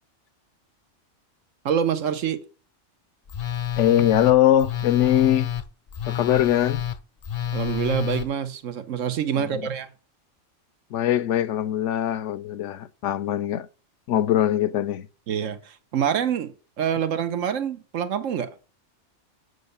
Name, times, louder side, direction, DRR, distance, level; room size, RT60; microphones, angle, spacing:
voice 1, 1.6-2.4 7.5-9.9 15.3-18.5, right 8 dB, 85° right, 1.3 m, -26 dB
Telephone, 3.3-8.3, left 10 dB, 45° left, 0.5 m, -29 dB
voice 2, 3.8-5.5 6.1-6.9 9.3-9.7 10.9-13.7 14.1-15.1, left 11 dB, 75° left, 1.0 m, -22 dB
8.1 x 5.3 x 6.7 m
omnidirectional pair, 1.3 m